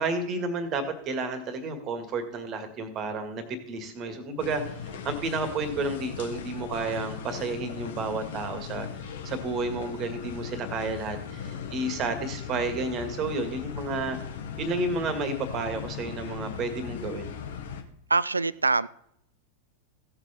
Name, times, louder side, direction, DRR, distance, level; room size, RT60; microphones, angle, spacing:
voice 1, 0.0-4.6 4.9-8.9 9.2-14.2 14.6-17.4, right 3 dB, 35° right, 9 dB, 2.0 m, -31 dB
sound 1, 4.4-17.8, left 7 dB, 60° left, 1.4 m, -38 dB
voice 2, 18.1-18.9, right 3 dB, 80° right, 20 dB, 0.4 m, -24 dB
16.5 x 6.8 x 4.3 m, 0.71 s
figure-of-eight pair, 90°, 0 cm